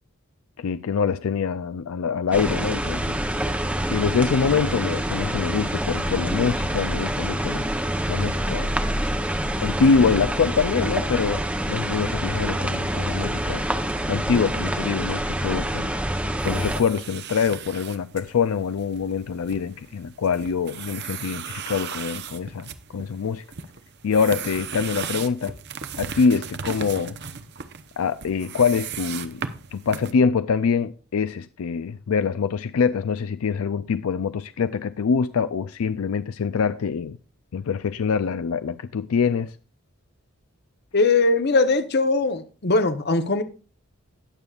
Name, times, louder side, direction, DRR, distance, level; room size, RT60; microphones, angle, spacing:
voice 1, 0.6-3.1 3.9-7.6 8.1-8.7 9.6-11.4 11.7-13.6 14.1-15.9 16.4-23.4 24.0-25.5 26.0-27.2 28.0-37.2 37.5-39.5, left 5 dB, 75° left, 0.4 m, -24 dB
sound 1, 2.3-16.8, right 1 dB, 5° right, 0.8 m, -26 dB
sound 2, 16.4-30.1, right 6 dB, 50° right, 0.7 m, -37 dB
voice 2, 40.9-43.4, left 3 dB, 50° left, 0.9 m, -20 dB
18.5 x 6.9 x 2.4 m
head